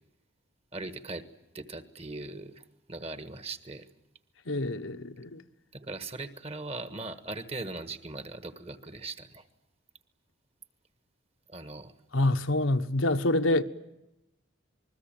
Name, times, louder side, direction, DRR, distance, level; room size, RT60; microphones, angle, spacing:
voice 1, 0.7-1.3 1.5-2.6 2.9-3.9 5.7-9.5 11.5-11.9, right 2 dB, 30° right, 1.5 m, -39 dB
voice 2, 4.4-5.4 12.1-13.6, left 2 dB, 75° left, 1.3 m, -26 dB
27.5 x 21.0 x 9.0 m
head